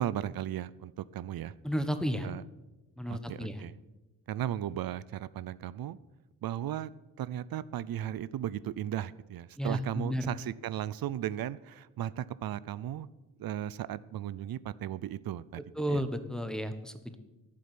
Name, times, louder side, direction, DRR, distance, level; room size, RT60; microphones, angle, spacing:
voice 1, 0.0-1.5 2.2-2.4 3.1-3.8 4.3-6.0 6.4-6.9 7.2-13.1 13.4-15.6 15.9-16.0, right 11 dB, 85° right, 18 dB, 0.6 m, -36 dB
voice 2, 1.6-2.3 3.0-3.6 9.6-10.3 15.8-17.2, equal, ahead, 9 dB, 1.1 m, -32 dB
11.5 x 8.5 x 9.6 m, 1.1 s
wide cardioid pair, 130°, 34 cm